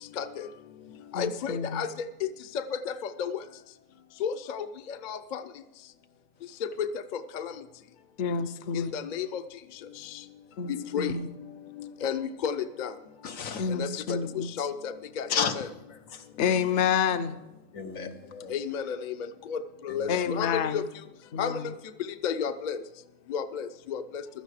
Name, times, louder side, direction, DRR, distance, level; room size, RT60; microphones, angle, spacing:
voice 1, 0.2-0.5 1.1-1.9 2.2-2.3 3.2-3.3 4.2-4.7 5.0-5.4 6.6-6.9 7.3-7.5 8.7-9.4 10.7-11.1 11.8-12.9 13.8-13.9 14.3-15.7 18.5-19.1 19.5-19.6 19.8-20.8 21.4-21.5 22.2-22.8 23.3-24.0, left 8 dB, 45° left, 10 dB, 0.6 m, -31 dB
voice 2, 1.1-1.9 8.2-8.9 10.6-10.7 11.0-11.3 13.5-14.7 16.4-17.4 20.1-20.9 21.3-21.7, left 7 dB, 65° left, 11 dB, 1.0 m, -29 dB
voice 3, 13.2-13.7 15.3-15.6 15.9-16.3 17.7-18.6 19.9-20.4, left 6 dB, 85° left, 7 dB, 1.4 m, -33 dB
16.0 x 13.0 x 4.9 m, 0.94 s
omnidirectional pair, 1.4 m